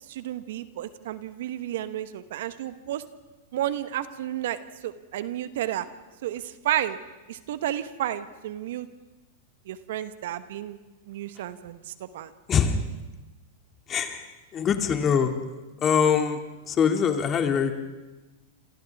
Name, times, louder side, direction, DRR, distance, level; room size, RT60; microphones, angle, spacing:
voice 1, 0.1-3.0 3.5-5.9 6.2-7.0 7.3-8.9 9.6-10.8 11.0-12.3, right 12 dB, 70° right, 12 dB, 1.2 m, -32 dB
voice 2, 13.9-14.2 14.5-15.3 15.8-17.8, left 7 dB, 30° left, 5 dB, 2.5 m, -23 dB
28.0 x 27.0 x 3.6 m, 1.1 s
hypercardioid pair, 115°, 0 cm